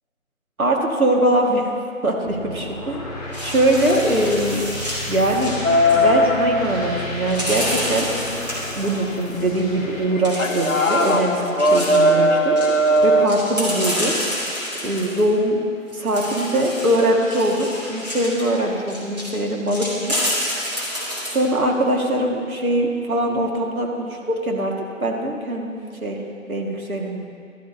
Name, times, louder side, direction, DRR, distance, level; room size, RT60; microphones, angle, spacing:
voice 1, 0.6-1.7 2.0-3.0 3.4-4.6 5.1-5.6 5.9-8.1 8.8-14.2 14.8-15.6 15.9-20.3 20.7-26.2 26.5-27.2, right 1 dB, 85° right, 0 dB, 1.8 m, -22 dB
sound 1, 2.2-10.1, left 1 dB, 30° left, 2.0 m, -33 dB
sound 2, 3.3-6.0 7.3-9.0 10.2-12.1 12.6-15.2 15.9-19.3 19.7-21.3, equal, 30° right, 2.0 m, -29 dB
sound 3, 5.6-13.3, equal, 65° left, 0.9 m, -20 dB
12.5 x 12.0 x 2.6 m, 2.3 s
figure-of-eight pair, 175°, 42 cm